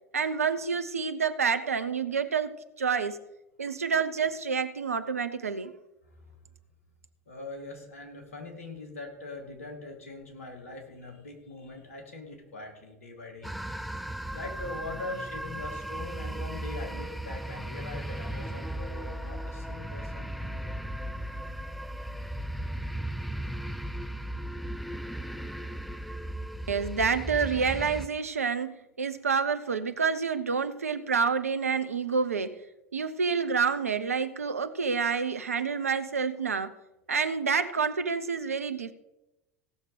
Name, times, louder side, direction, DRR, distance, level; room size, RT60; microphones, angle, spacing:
voice 1, 0.1-3.2 3.6-5.7 26.7-32.6 32.9-36.7 37.1-38.9, right 5 dB, 85° right, 12 dB, 0.7 m, -28 dB
voice 2, 7.3-13.8 14.3-20.8, left 2 dB, 75° left, 2 dB, 2.5 m, -42 dB
sound 1, 13.4-28.1, right 1 dB, ahead, 0.6 m, -36 dB
17.0 x 6.5 x 5.0 m, 0.96 s
figure-of-eight pair, 75°, 8 cm